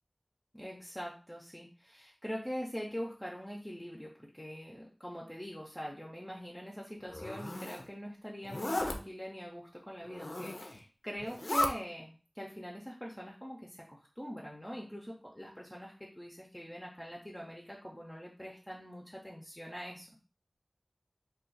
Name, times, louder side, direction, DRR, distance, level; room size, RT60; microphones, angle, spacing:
voice 1, 0.5-20.1, equal, 10° left, -3 dB, 0.6 m, -43 dB
Zipper (clothing), 7.1-7.8 8.4-9.0 10.1-10.8 11.2-11.7, left 1 dB, 55° left, 0.4 m, -35 dB
2.4 x 2.3 x 3.8 m, 0.38 s
wide cardioid pair, 45°, 0 cm